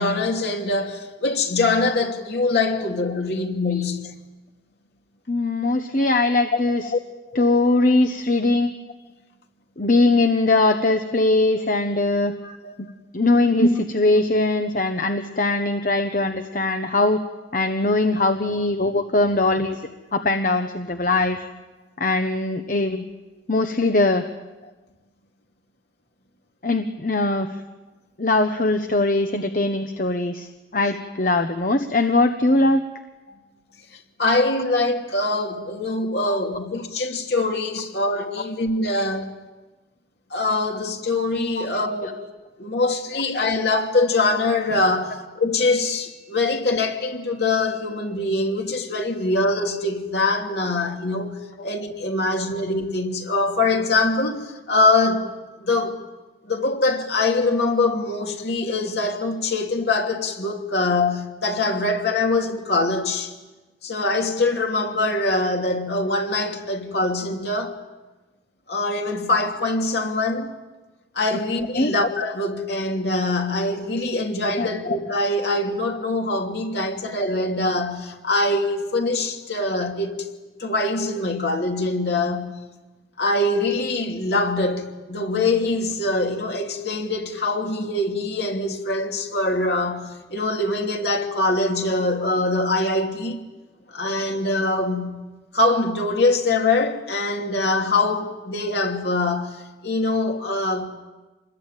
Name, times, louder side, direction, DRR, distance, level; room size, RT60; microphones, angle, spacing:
voice 1, 0.0-4.1 6.9-7.0 12.4-12.7 13.6-13.7 33.3-33.4 33.9-39.3 40.3-42.2 42.6-51.4 51.6-55.3 55.6-56.0 56.4-63.3 63.8-67.7 68.7-70.5 71.1-80.3 80.6-82.6 83.2-93.4 93.9-95.2 95.5-100.9, left 2 dB, 60° left, 2.9 m, -23 dB
voice 2, 5.3-6.8 7.3-8.7 9.8-12.3 13.1-13.7 13.9-17.2 17.5-19.8 20.1-21.4 22.0-23.0 23.5-24.2 26.6-27.6 28.2-32.8 36.2-36.4 41.6-41.7 71.7-71.9 74.6-74.7, left 2 dB, 45° left, 1.1 m, -21 dB
27.0 x 21.5 x 9.0 m
head